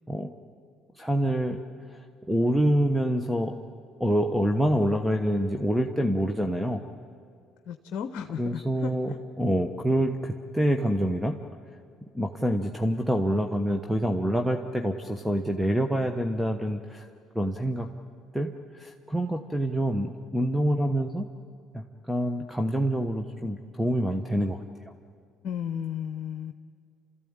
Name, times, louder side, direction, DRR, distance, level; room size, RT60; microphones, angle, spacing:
voice 1, 0.9-1.6 1.9-3.5 4.0-6.8 8.4-11.4 12.1-17.1 17.3-17.9 18.3-21.2 21.7-24.6, equal, 5° right, 6 dB, 1.2 m, -26 dB
voice 2, 7.7-9.2 25.4-26.5, left 8 dB, 60° left, 8 dB, 0.9 m, -34 dB
29.0 x 14.0 x 8.9 m, 2.2 s
supercardioid pair, 75°, 0 cm